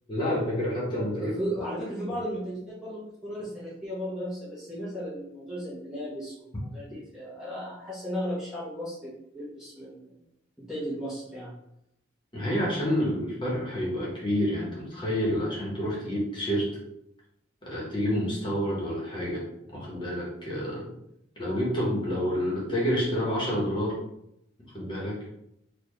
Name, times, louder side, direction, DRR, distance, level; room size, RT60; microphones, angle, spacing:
voice 1, 0.1-1.3 12.3-16.7 17.6-19.4 19.7-20.9 21.4-23.9 24.7-25.1, equal, 25° left, -5 dB, 1.1 m, -28 dB
voice 2, 1.1-6.5 6.7-10.1 10.6-11.5, equal, 5° right, -10 dB, 0.9 m, -35 dB
4.0 x 2.4 x 3.2 m, 0.80 s
head